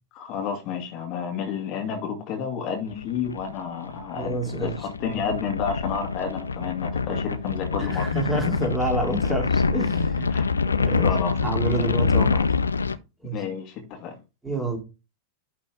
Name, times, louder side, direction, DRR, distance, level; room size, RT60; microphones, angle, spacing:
voice 1, 0.1-8.1 10.3-10.5 11.0-11.4 13.3-14.1, left 6 dB, 40° left, 2.1 m, -30 dB
sound 1, 2.9-13.0, left 5 dB, 75° left, 0.5 m, -26 dB
voice 2, 4.1-4.8 7.0-7.1 7.8-10.3 10.7-11.1 11.4-12.5 13.2-13.4 14.4-14.8, right 1 dB, 5° right, 2.6 m, -28 dB
11.5 x 4.3 x 3.7 m
figure-of-eight pair, 90°, 0 cm